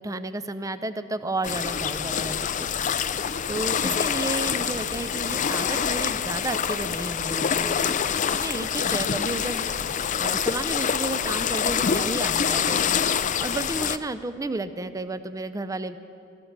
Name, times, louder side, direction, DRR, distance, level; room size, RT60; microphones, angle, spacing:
voice 1, 0.0-2.7 3.5-7.9 8.3-9.7 10.2-13.0 13.4-16.0, right 2 dB, 15° right, 12 dB, 0.5 m, -32 dB
sound 1, 1.4-14.0, left 7 dB, 35° left, 0.4 m, -26 dB
15.0 x 15.0 x 6.6 m, 2.5 s
head